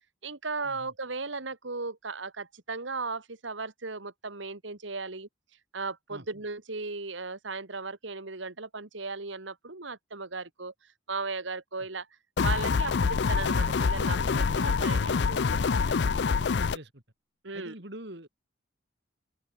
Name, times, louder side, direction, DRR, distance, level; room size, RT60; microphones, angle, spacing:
voice 1, 0.2-5.3 5.7-10.7 11.1-12.1 12.4-16.0 17.4-17.7, right 3 dB, 75° right, 2.0 m, -36 dB
sound 1, 12.4-16.8, left 5 dB, 60° left, 0.4 m, -26 dB
voice 2, 17.5-18.3, right 1 dB, 60° right, 3.9 m, -44 dB
open air
head